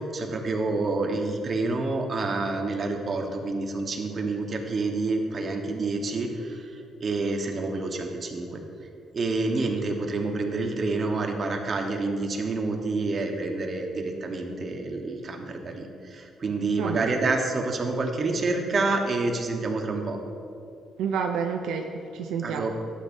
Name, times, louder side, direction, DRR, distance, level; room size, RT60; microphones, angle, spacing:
voice 1, 0.0-8.6 9.1-20.2 22.4-22.8, right 3 dB, 45° right, 3 dB, 1.1 m, -28 dB
voice 2, 16.7-17.2 21.0-22.7, right 6 dB, 85° right, 4 dB, 0.4 m, -30 dB
12.0 x 8.3 x 2.7 m, 2.6 s
cardioid pair, 90°, 0 cm